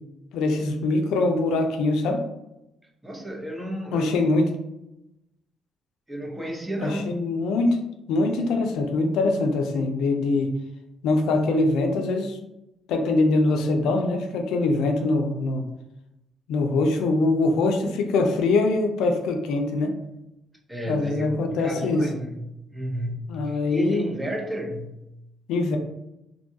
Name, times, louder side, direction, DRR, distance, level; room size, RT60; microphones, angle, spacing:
voice 1, 0.3-2.2 3.9-4.5 6.8-7.8 8.1-10.5 11.0-12.4 12.9-15.6 16.5-20.0 20.9-22.1 23.3-24.1 25.5-25.8, left 2 dB, 90° left, 4 dB, 0.4 m, -23 dB
voice 2, 3.0-4.2 6.1-7.2 20.7-25.0, equal, 15° right, 0 dB, 0.6 m, -32 dB
2.6 x 2.2 x 2.7 m, 0.88 s
cardioid pair, 90°, 0 cm